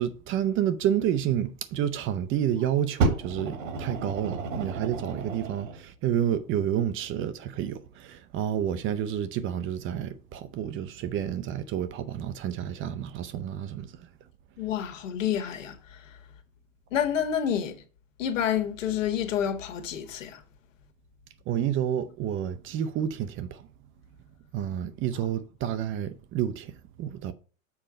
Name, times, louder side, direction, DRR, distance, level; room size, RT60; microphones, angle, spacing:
voice 1, 0.0-13.9 21.5-23.7 24.5-27.3, right 10 dB, 30° right, 0.6 m, -29 dB
Fire, 3.0-5.8 6.6-6.7, right 3 dB, 70° right, 1.9 m, -30 dB
voice 2, 14.6-15.8 16.9-17.8 18.2-20.4, left 9 dB, 65° left, 1.7 m, -28 dB
7.1 x 4.8 x 5.1 m
hypercardioid pair, 95°, 40 cm